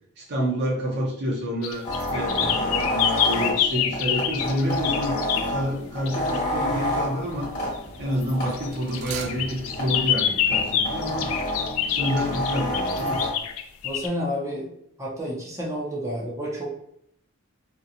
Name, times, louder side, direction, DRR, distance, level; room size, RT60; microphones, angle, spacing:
voice 1, 0.2-7.5 8.0-11.3 11.9-13.2, equal, 55° right, -1 dB, 0.7 m, -28 dB
sound 1, 1.6-5.5 6.1-6.4 8.2-14.1, left 9 dB, 80° left, 0.3 m, -26 dB
sound 2, 1.8-13.3, left 1 dB, 45° left, 1.2 m, -29 dB
sound 3, 6.1-6.4 8.5-11.3 11.6-11.7, right 6 dB, 85° right, 0.3 m, -40 dB
voice 2, 13.8-14.7 15.0-16.7, equal, 15° right, -5 dB, 0.6 m, -30 dB
2.8 x 2.2 x 2.5 m, 0.75 s
head